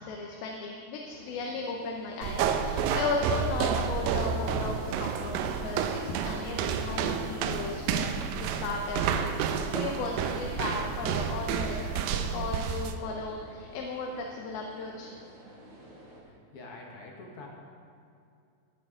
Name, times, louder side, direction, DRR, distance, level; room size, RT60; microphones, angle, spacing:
voice 1, 0.0-15.1, left 3 dB, 85° left, 1 dB, 2.7 m, -36 dB
sound 1, 1.0-16.2, right 1 dB, 35° right, 2.3 m, -51 dB
sound 2, 2.2-13.0, right 7 dB, 80° right, 2.2 m, -30 dB
voice 2, 16.2-17.5, left 2 dB, 60° left, -1 dB, 1.5 m, -46 dB
13.0 x 9.9 x 3.7 m, 2.4 s
omnidirectional pair, 4.3 m